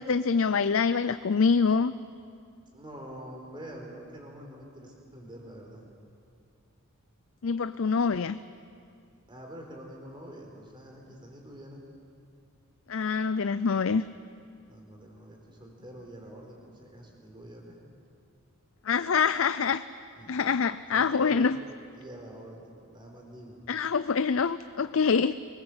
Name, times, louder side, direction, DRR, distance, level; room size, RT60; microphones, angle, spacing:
voice 1, 0.0-1.9 7.4-8.4 12.9-14.1 18.8-19.8 20.3-21.6 23.7-25.3, left 5 dB, 65° left, 13 dB, 0.5 m, -25 dB
voice 2, 2.7-5.9 9.3-11.8 14.7-17.8 20.2-20.4 20.9-21.5 21.9-23.7, right 1 dB, 20° right, 1 dB, 4.2 m, -46 dB
23.5 x 20.5 x 8.1 m, 2.4 s
head